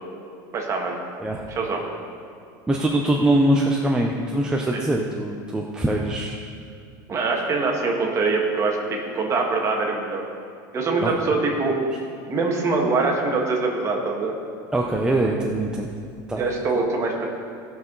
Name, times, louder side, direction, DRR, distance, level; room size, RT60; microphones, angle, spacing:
voice 1, 0.5-0.9 1.5-1.8 4.7-4.8 7.1-10.3 10.7-11.8 12.3-14.3 16.4-17.3, right 3 dB, 30° right, 0 dB, 1.7 m, -23 dB
voice 2, 1.2-1.5 2.7-6.4 11.0-11.3 14.7-15.9 16.3-16.4, right 1 dB, 5° right, -1 dB, 0.7 m, -23 dB
17.5 x 5.9 x 4.0 m, 2.4 s
supercardioid pair, 135°, 10 cm